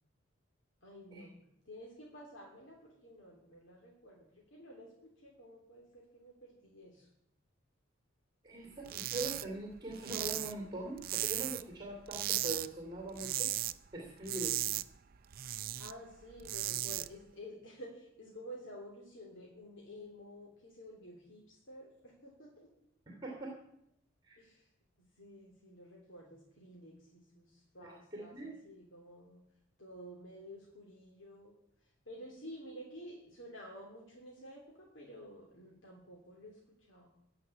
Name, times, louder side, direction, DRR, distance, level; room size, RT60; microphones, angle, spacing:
voice 1, 0.8-7.1 15.8-22.7 24.4-24.7 25.0-29.4 29.8-31.5 31.8-37.1, equal, 65° left, -2 dB, 2.8 m, -52 dB
voice 2, 8.4-13.5 13.9-14.6 23.1-23.6 24.2-24.4 28.1-28.5, right 2 dB, 20° right, 1 dB, 2.6 m, -42 dB
sound 1, 8.8-9.4 9.7-11.7 12.1-12.7 13.0-13.7 14.1-15.9 16.3-17.1, right 14 dB, 45° right, 0.4 m, -36 dB
15.0 x 5.7 x 9.6 m, 0.75 s
head